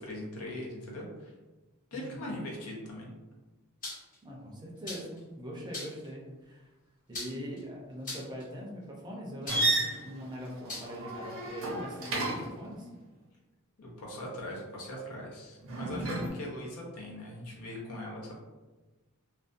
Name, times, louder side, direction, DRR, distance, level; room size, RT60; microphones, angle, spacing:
voice 1, 0.0-1.3 1.9-3.1 13.8-18.3, left 1 dB, 90° left, -2 dB, 0.7 m, -40 dB
voice 2, 1.9-2.4 4.2-6.7 7.1-12.9, equal, 20° right, -3 dB, 0.5 m, -42 dB
sound 1, 3.8-4.2 4.9-5.2 5.7-6.1 7.1-7.6 8.0-8.4 9.5-9.8 10.7-10.9, left 2 dB, 35° left, 0.7 m, -40 dB
sound 2, 9.5-12.6 15.6-16.3, right 2 dB, 65° right, 0.6 m, -32 dB
2.4 x 2.1 x 2.5 m, 1.2 s
head